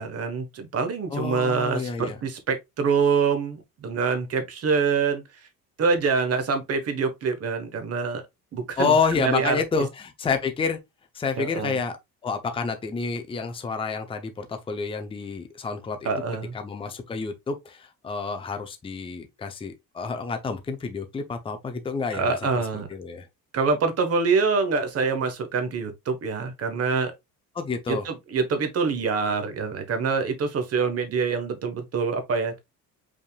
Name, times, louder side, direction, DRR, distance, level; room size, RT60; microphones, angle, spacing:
voice 1, 0.0-5.2 5.8-8.2 8.5-9.6 11.4-11.8 16.0-16.5 22.1-22.9 23.5-27.1 27.9-32.6, right 5 dB, 40° right, 1.2 m, -25 dB
voice 2, 1.1-2.2 8.8-10.8 11.1-12.0 12.2-16.1 16.5-22.4 22.9-23.3 27.5-28.1, left 5 dB, 15° left, 0.6 m, -28 dB
5.3 x 3.5 x 2.3 m
cardioid pair, 135°, 37 cm